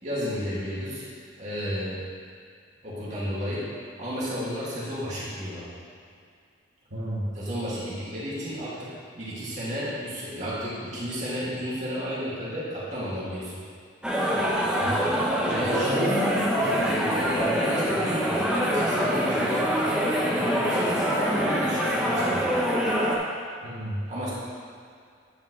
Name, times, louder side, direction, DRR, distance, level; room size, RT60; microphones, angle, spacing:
voice 1, 0.0-1.1 1.4-2.0 2.8-3.7 4.0-5.7 7.3-13.6 15.4-15.9 16.6-19.7 20.2-22.5 24.1-24.3, equal, 35° right, -9 dB, 2.6 m, -32 dB
voice 2, 6.9-7.4 14.8-14.9 15.5-16.8 23.6-24.1, equal, 65° right, -9 dB, 2.3 m, -30 dB
sound 1, 14.0-23.1, equal, 5° right, 1.0 m, -25 dB
10.0 x 9.2 x 3.3 m, 2.3 s
head